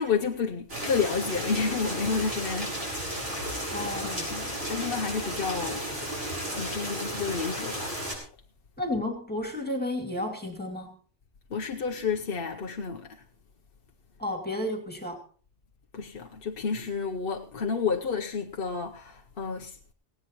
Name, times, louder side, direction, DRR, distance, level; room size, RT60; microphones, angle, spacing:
voice 1, 0.0-2.8 3.6-5.9 6.5-8.0 11.5-13.2 15.9-19.8, left 5 dB, 55° left, 1.0 m, -30 dB
sound 1, 0.7-8.1, right 1 dB, 60° right, 5.6 m, -33 dB
voice 2, 3.7-4.3 8.8-11.0 14.2-15.2, left 1 dB, 10° left, 2.6 m, -32 dB
18.0 x 17.0 x 3.0 m
omnidirectional pair, 1.2 m